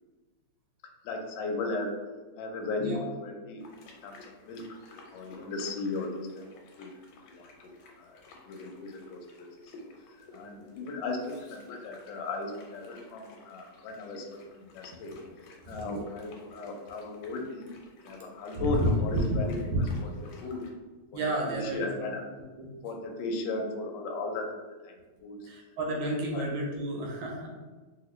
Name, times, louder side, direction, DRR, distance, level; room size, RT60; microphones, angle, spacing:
voice 1, 1.0-1.9 2.4-3.6 4.0-4.2 4.5-4.8 5.1-6.5 6.8-6.9 7.3-7.7 8.0-9.8 10.1-15.2 15.7-17.7 18.0-19.5 20.0-20.1 20.4-20.7 21.1-22.2 22.8-24.5 24.8-24.9 25.2-25.4 26.3-26.4, left 3 dB, 75° left, 2 dB, 1.2 m, -36 dB
sound 1, 3.6-20.7, left 3 dB, 90° left, 1.5 m, -54 dB
voice 2, 18.5-18.9 21.1-21.9 22.6-22.7 25.4-27.5, right 1 dB, 75° right, -1 dB, 1.2 m, -32 dB
2.9 x 2.8 x 3.0 m, 1.3 s
omnidirectional pair, 2.3 m